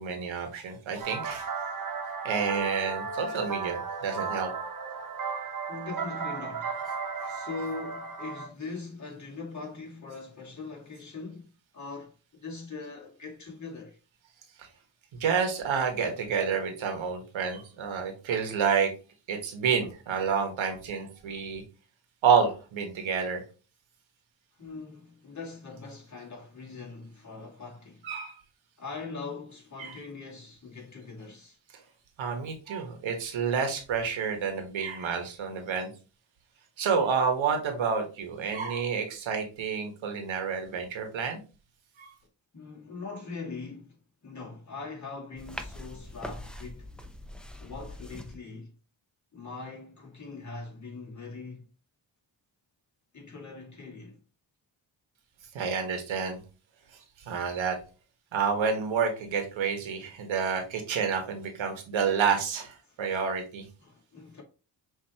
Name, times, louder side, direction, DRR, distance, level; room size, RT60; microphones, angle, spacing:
voice 1, 0.0-1.5 2.2-4.5 14.6-14.7 15.1-18.9 19.3-21.6 22.2-23.4 28.0-28.3 29.8-30.0 32.2-35.9 36.8-41.4 42.0-42.1 55.5-56.4 57.2-57.8 58.3-63.7, right 6 dB, 80° right, 1.4 m, -29 dB
sound 1, 1.0-8.5, right 5 dB, 45° right, 1.1 m, -35 dB
voice 2, 5.7-6.9 7.2-14.0 24.6-28.0 28.8-31.6 42.5-44.0 44.2-46.9 47.6-48.7 49.3-51.7 53.1-54.2 62.8-63.0 63.8-64.4, left 4 dB, 40° left, 1.9 m, -41 dB
sound 2, 45.4-48.4, left 1 dB, ahead, 0.7 m, -42 dB
5.9 x 2.9 x 2.9 m
cardioid pair, 85°, 46 cm